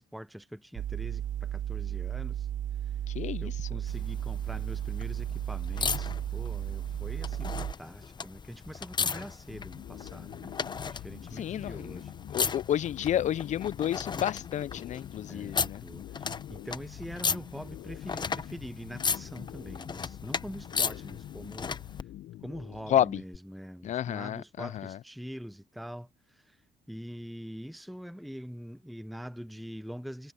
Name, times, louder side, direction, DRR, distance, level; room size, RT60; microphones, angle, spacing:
voice 1, 0.0-2.5 2.8-2.9 3.4-12.1 15.3-21.7 22.4-26.6 26.9-30.3, equal, ahead, 0.9 m, -44 dB
sound 1, 0.8-7.7, right 11 dB, 50° right, 0.7 m, -34 dB
voice 2, 3.1-3.5 11.4-12.0 12.3-15.8 22.9-23.2 23.8-25.0, left 11 dB, 45° left, 0.5 m, -30 dB
sound 2, 3.9-22.0 23.3-23.4, left 5 dB, 25° left, 0.8 m, -36 dB
sound 3, 9.5-23.3, left 13 dB, 65° left, 0.9 m, -46 dB
cardioid pair, 110°, 17 cm